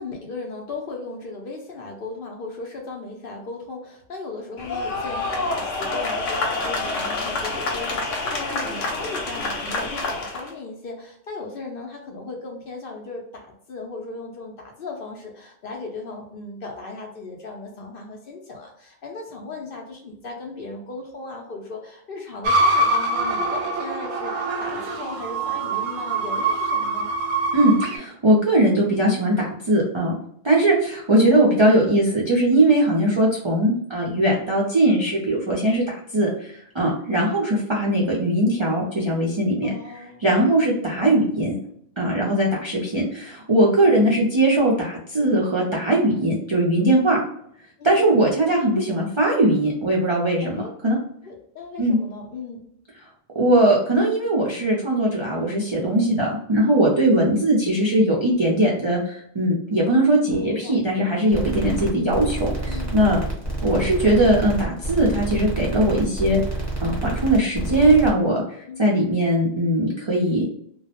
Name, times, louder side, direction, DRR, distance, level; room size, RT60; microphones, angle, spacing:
voice 1, 0.0-27.1 31.2-31.4 39.6-40.7 43.8-44.1 47.8-48.1 50.4-50.7 51.2-52.6 60.4-60.8 62.7-63.1 68.7-68.9, left 3 dB, 60° left, 1 dB, 0.6 m, -37 dB
sound 1, 4.6-10.5, left 3 dB, 80° left, 1.0 m, -27 dB
sound 2, 22.4-28.0, right 2 dB, 70° right, 0.8 m, -24 dB
voice 2, 27.5-30.1 30.4-41.6 42.0-47.2 47.8-51.0 51.8-52.0 53.3-63.2 63.6-66.4 66.8-68.4 68.8-70.5, right 1 dB, 50° right, -4 dB, 0.3 m, -20 dB
sound 3, 61.3-68.1, right 2 dB, 15° right, 0.8 m, -28 dB
2.3 x 2.0 x 2.8 m, 0.69 s
omnidirectional pair, 1.2 m